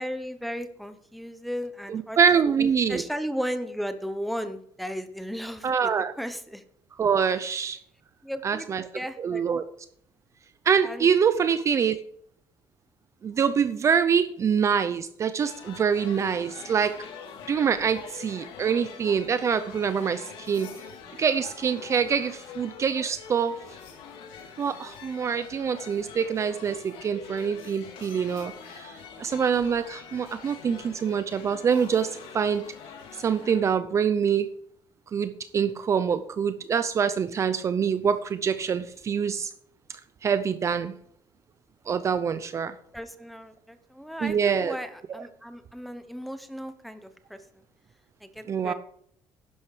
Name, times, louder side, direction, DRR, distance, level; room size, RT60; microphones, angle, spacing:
voice 1, 0.0-6.6 7.3-7.6 8.2-8.7 8.9-9.4 10.8-11.1 42.9-47.6 48.2-48.7, equal, ahead, 9 dB, 1.0 m, -35 dB
voice 2, 1.9-3.0 5.6-6.1 7.0-7.8 8.4-8.8 9.2-9.6 10.6-12.0 13.2-17.1 17.5-20.7 21.2-23.5 24.6-32.7 33.2-34.5 35.1-39.5 40.2-40.9 41.9-42.7 44.2-44.8 45.1-45.2 48.5-48.7, right 7 dB, 30° right, 12 dB, 0.6 m, -25 dB
sound 1, 15.4-33.6, left 6 dB, 75° left, 3.0 m, -44 dB
12.0 x 10.0 x 5.0 m, 0.65 s
cardioid pair, 150°, 9 cm